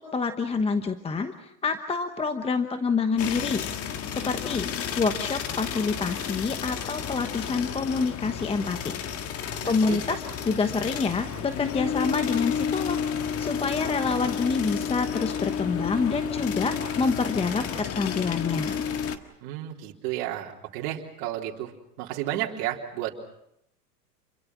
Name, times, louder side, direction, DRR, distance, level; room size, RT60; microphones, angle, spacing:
voice 1, 0.0-4.7 5.0-8.9 9.6-18.8, left 4 dB, 10° left, 8 dB, 1.1 m, -27 dB
sound 1, 3.2-19.2, left 8 dB, 30° left, 1.6 m, -31 dB
voice 2, 9.6-10.0 19.4-21.7 22.0-23.1, right 13 dB, 50° right, -1 dB, 3.8 m, -32 dB
28.5 x 23.0 x 6.1 m, 0.78 s
hypercardioid pair, 115°, 48 cm